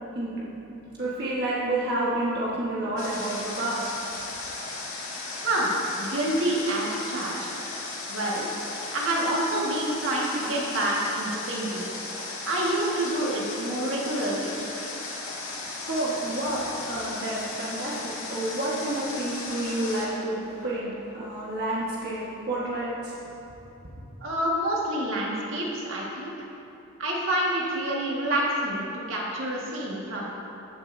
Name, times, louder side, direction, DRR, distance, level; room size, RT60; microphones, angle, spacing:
voice 1, 0.1-0.5 1.0-4.0 15.7-20.9 21.1-23.1, right 1 dB, 50° right, -7 dB, 1.5 m, -29 dB
Water, 3.0-20.1, left 3 dB, 75° left, 2.2 m, -36 dB
voice 2, 5.4-7.5 8.1-8.5 8.9-11.9 12.5-14.5 24.2-26.3 27.0-30.2, right 1 dB, 70° right, -4 dB, 1.8 m, -27 dB
15.0 x 9.6 x 2.7 m, 2.9 s
head